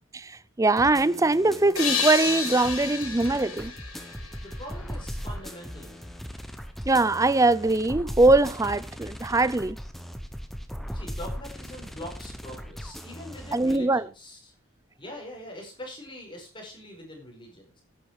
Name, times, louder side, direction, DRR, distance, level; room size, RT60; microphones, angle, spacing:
voice 1, 0.1-3.7 6.9-9.8 13.5-14.0, right 2 dB, 15° right, 0.4 m, -22 dB
sound 1, 0.8-13.8, equal, ahead, 0.9 m, -38 dB
sound 2, 1.7-5.2, left 6 dB, 85° left, 3.3 m, -31 dB
voice 2, 4.4-6.2 10.9-14.5 15.0-17.8, left 1 dB, 20° left, 4.7 m, -43 dB
11.0 x 8.8 x 4.8 m
head